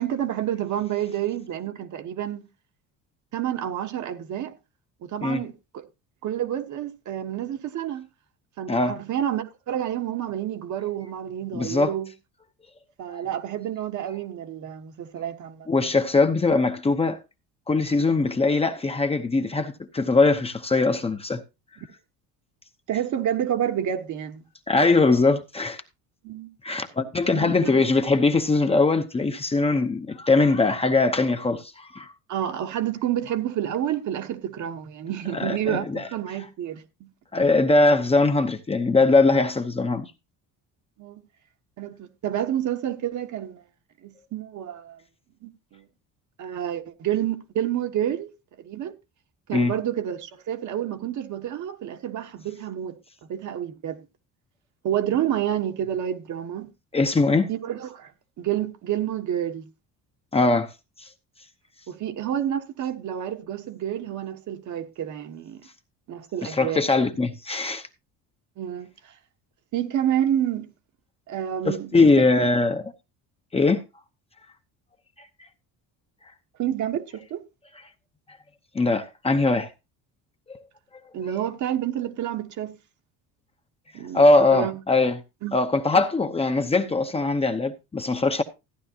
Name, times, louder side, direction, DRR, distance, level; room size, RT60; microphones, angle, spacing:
voice 1, 0.0-2.5 3.3-4.6 5.0-5.8 6.2-8.1 8.6-12.1 13.0-15.7 22.9-24.4 26.2-26.5 27.3-27.7 32.3-37.1 41.0-41.2 41.8-43.6 44.0-45.0 45.4-45.9 46.4-48.9 49.5-53.0 53.3-54.0 54.8-56.7 57.5-58.1 58.4-59.7 61.9-65.6 66.1-66.8 68.6-69.1 69.7-70.7 71.3-71.9 76.6-77.4 81.1-82.7 83.9-84.8 85.4-85.6, right 10 dB, 50° right, 1.3 m, -29 dB
voice 2, 11.5-11.9 13.1-13.2 15.7-17.2 17.7-21.4 24.7-25.8 26.6-32.1 35.3-36.1 37.3-40.1 49.5-49.7 56.9-57.5 60.3-60.7 61.0-61.1 66.4-67.9 71.6-72.9 73.5-73.8 78.7-79.7 80.5-80.6 84.1-85.2 85.5-88.4, left 3 dB, 15° left, 0.8 m, -21 dB
14.5 x 10.0 x 2.8 m
cardioid pair, 135°, 37 cm